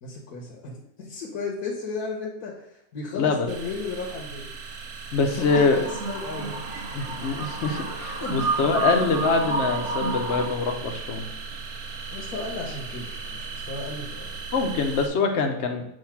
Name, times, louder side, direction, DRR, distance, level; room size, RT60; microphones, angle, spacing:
voice 1, 0.0-6.9 8.2-8.3 12.1-14.4, left 4 dB, 75° left, -2 dB, 1.5 m, -35 dB
voice 2, 3.1-3.5 5.1-5.9 6.9-11.2 14.5-15.8, left 4 dB, 55° left, 4 dB, 1.0 m, -24 dB
sound 1, 3.5-15.1, right 4 dB, 85° right, 1.3 m, -38 dB
sound 2, 5.4-10.5, right 3 dB, 50° right, 2.8 m, -30 dB
7.8 x 2.8 x 5.8 m, 0.77 s
omnidirectional pair, 1.6 m